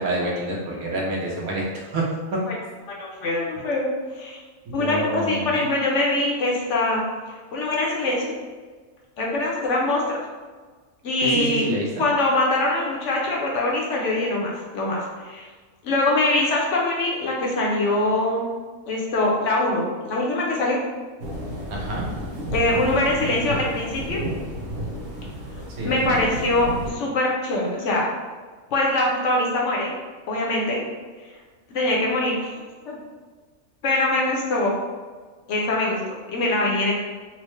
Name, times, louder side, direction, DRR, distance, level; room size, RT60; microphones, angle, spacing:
voice 1, 0.0-2.0 2.3-2.4 4.8-5.5 11.2-12.0 21.7-22.0 25.8-26.1, right 1 dB, 80° right, -3 dB, 1.2 m, -27 dB
voice 2, 2.9-3.9 4.2-4.4 4.7-7.0 7.5-8.3 9.2-10.2 11.0-11.7 12.0-15.5 15.8-18.5 18.9-20.8 22.5-24.2 25.8-28.1 28.7-29.9 30.3-30.8 31.7-32.5 32.9-33.0 33.8-34.7 35.5-36.0 36.3-36.9, left 2 dB, 65° left, -2 dB, 0.9 m, -23 dB
sound 1, 21.2-26.9, right 1 dB, 45° right, 1.0 m, -31 dB
4.2 x 2.0 x 3.1 m, 1.4 s
omnidirectional pair, 1.5 m